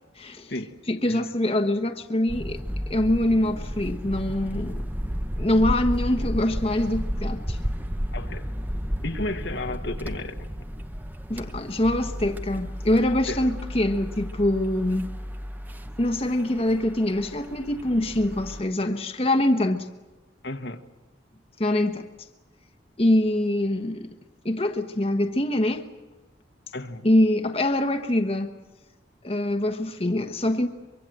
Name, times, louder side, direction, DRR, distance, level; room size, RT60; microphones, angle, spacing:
voice 1, 0.1-0.5 0.9-2.6 2.9-4.8 5.4-7.6 11.3-15.1 16.0-19.9 21.6-22.1 23.0-24.1 24.4-25.9 27.0-28.5 29.2-30.7, left 1 dB, 30° left, 1.2 m, -24 dB
sound 1, 2.3-18.6, equal, 10° right, 0.9 m, -33 dB
voice 2, 8.1-8.5 9.0-10.4 13.3-13.4 20.4-20.8 26.7-27.1, left 2 dB, 65° left, 1.5 m, -33 dB
24.5 x 24.0 x 7.8 m
head